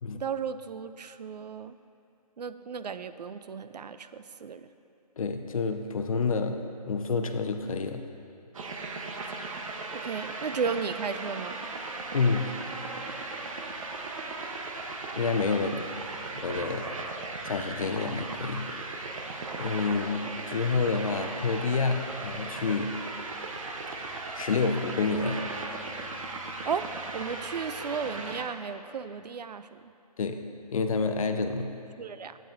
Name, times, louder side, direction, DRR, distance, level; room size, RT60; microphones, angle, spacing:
voice 1, 0.1-1.8 2.4-4.7 9.9-11.6 15.6-15.9 21.1-21.3 26.6-29.9 32.0-32.4, right 6 dB, 80° right, 12 dB, 0.4 m, -35 dB
voice 2, 5.2-8.1 12.1-12.6 15.2-15.9 16.4-16.9 17.4-18.7 19.6-23.0 24.3-25.5 30.2-30.4 30.7-31.8, left 4 dB, 55° left, 7 dB, 0.6 m, -28 dB
sound 1, 8.5-28.4, right 3 dB, 55° right, 0.8 m, -37 dB
11.5 x 8.9 x 2.5 m, 2.8 s
hypercardioid pair, 160°, 21 cm